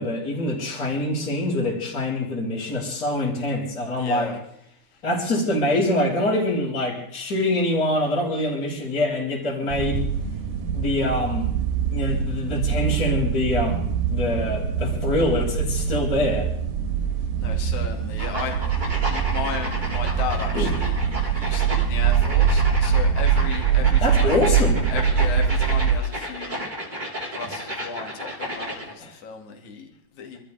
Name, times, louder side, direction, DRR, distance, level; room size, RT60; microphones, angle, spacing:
voice 1, 0.0-4.3 5.0-10.1 10.7-11.5 11.9-16.5 20.5-20.7 21.4-21.5 24.0-24.9, left 1 dB, 25° left, -5 dB, 4.0 m, -25 dB
voice 2, 4.0-4.4 4.9-5.0 17.4-21.0 21.3-24.4 24.9-26.6 27.3-30.4, left 5 dB, 50° left, 2 dB, 3.3 m, -35 dB
sound 1, 9.7-26.0, right 7 dB, 75° right, 3.2 m, -23 dB
sound 2, 18.2-28.9, equal, 15° right, 1.9 m, -33 dB
27.5 x 13.5 x 3.5 m, 0.70 s
omnidirectional pair, 4.7 m